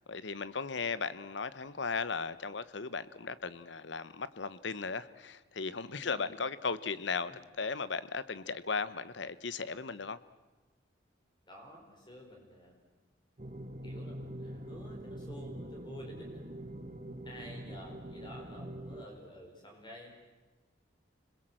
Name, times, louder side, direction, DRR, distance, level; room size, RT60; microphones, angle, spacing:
voice 1, 0.0-10.2, left 4 dB, 65° left, 15 dB, 0.9 m, -36 dB
voice 2, 5.9-6.3 11.5-12.7 13.8-16.4 17.2-20.1, equal, 25° left, 1 dB, 5.2 m, -51 dB
sound 1, 13.4-19.1, right 1 dB, 35° right, 1.6 m, -44 dB
26.0 x 21.0 x 7.7 m, 1.2 s
head